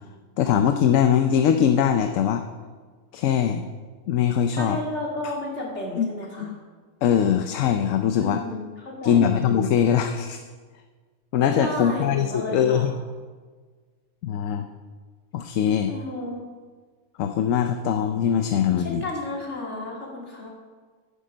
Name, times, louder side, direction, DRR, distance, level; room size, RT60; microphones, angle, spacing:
voice 1, 0.4-2.4 3.1-3.7 4.1-4.8 6.0-6.1 6.4-6.6 7.0-8.4 9.0-10.4 11.3-12.9 14.2-14.7 15.3-15.9 17.2-19.0, left 8 dB, 75° left, 7 dB, 1.0 m, -21 dB
voice 2, 4.6-6.5 8.2-9.4 11.6-12.9 15.9-16.5 18.8-20.5, left 1 dB, 55° left, -2 dB, 2.6 m, -32 dB
10.5 x 9.4 x 5.2 m, 1.5 s
omnidirectional pair, 1.4 m